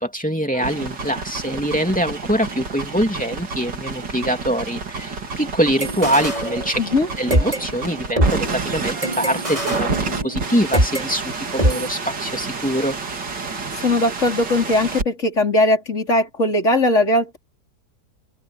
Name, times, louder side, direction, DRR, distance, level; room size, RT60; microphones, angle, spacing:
voice 1, 0.0-6.8 7.2-13.0, equal, 5° left, 2.9 m, -23 dB
long radar glitch hiss, 0.5-15.0, right 4 dB, 85° right, 3.4 m, -29 dB
sound 1, 5.8-7.0 7.3-11.0 11.6-11.9, right 1 dB, 20° right, 5.6 m, -23 dB
voice 2, 13.8-17.4, left 1 dB, 45° left, 4.8 m, -19 dB
open air
omnidirectional pair, 1.8 m